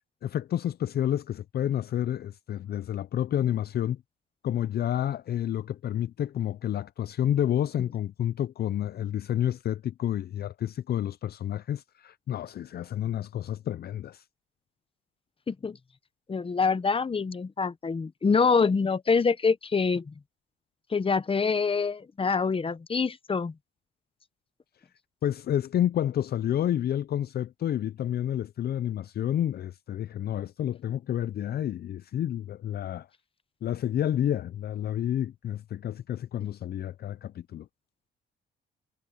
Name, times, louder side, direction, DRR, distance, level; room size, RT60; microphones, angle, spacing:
voice 1, 0.2-4.0 4.4-14.2 25.2-33.1 33.6-37.7, left 11 dB, 50° left, 0.5 m, -29 dB
voice 2, 15.5-15.8 16.3-20.1 20.9-23.5, left 5 dB, 25° left, 1.1 m, -25 dB
cardioid pair, 90°, 20 cm